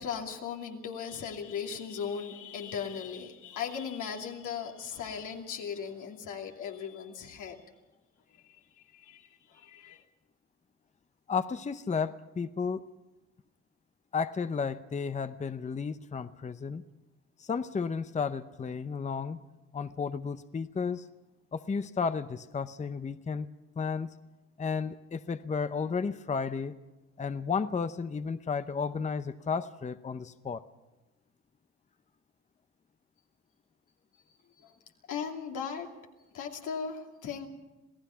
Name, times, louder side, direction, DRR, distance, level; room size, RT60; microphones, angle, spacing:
voice 1, 0.0-7.6 8.9-10.0 34.6-34.7 35.1-35.9 36.3-37.5, left 7 dB, 80° left, 2 dB, 2.8 m, -38 dB
voice 2, 11.3-12.8 14.1-16.8 17.4-19.4 19.7-21.0 21.5-23.5 23.8-24.1 24.6-26.7 27.2-30.6, left 5 dB, 25° left, 11 dB, 0.7 m, -33 dB
27.0 x 17.0 x 5.8 m, 1.1 s
cardioid pair, 90°, 30 cm